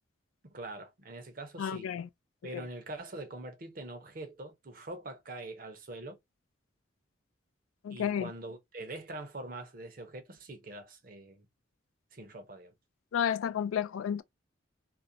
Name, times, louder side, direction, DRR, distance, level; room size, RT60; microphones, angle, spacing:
voice 1, 0.4-1.9 2.4-6.2 7.9-11.5 12.1-12.7, right 2 dB, 45° right, 0.6 m, -44 dB
voice 2, 1.6-2.1 2.5-2.6 7.8-8.3 13.1-14.2, left 8 dB, 90° left, 0.3 m, -31 dB
2.4 x 2.1 x 2.6 m
head